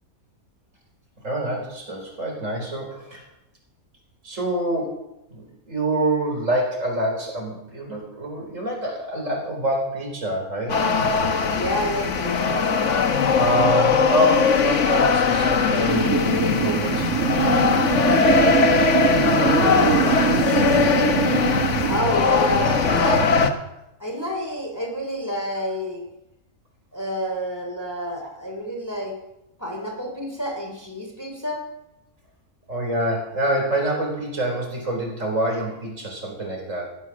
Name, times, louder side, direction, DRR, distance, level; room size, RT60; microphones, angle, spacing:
voice 1, 1.2-3.2 4.2-5.0 5.3-10.8 13.3-16.1 16.4-17.4 18.2-20.7 32.7-36.9, right 1 dB, 60° right, 1 dB, 4.6 m, -26 dB
sound 1, 10.7-23.5, left 5 dB, 60° left, 1.4 m, -20 dB
voice 2, 11.5-12.6 21.9-23.3 24.0-26.0 26.9-29.2 29.6-31.6, equal, 10° left, 1 dB, 3.0 m, -28 dB
sound 2, 15.9-22.0, right 9 dB, 75° right, 1.7 m, -24 dB
15.5 x 11.0 x 6.2 m, 0.89 s
omnidirectional pair, 1.5 m